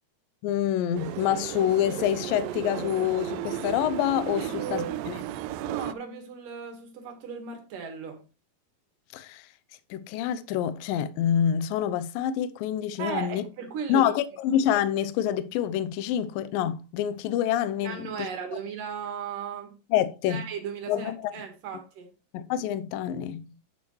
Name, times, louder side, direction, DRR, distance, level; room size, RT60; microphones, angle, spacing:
voice 1, 0.4-5.1 9.1-9.5 9.9-13.4 13.9-18.3 19.9-20.5 20.9-21.3 22.3-23.5, left 10 dB, 75° left, 2.2 m, -27 dB
sound 1, 0.9-5.9, right 12 dB, 90° right, 2.0 m, -34 dB
voice 2, 4.4-5.0 5.6-8.2 13.0-14.1 17.8-19.8 20.3-22.1, right 7 dB, 60° right, 3.0 m, -36 dB
9.6 x 7.1 x 3.1 m
omnidirectional pair, 4.6 m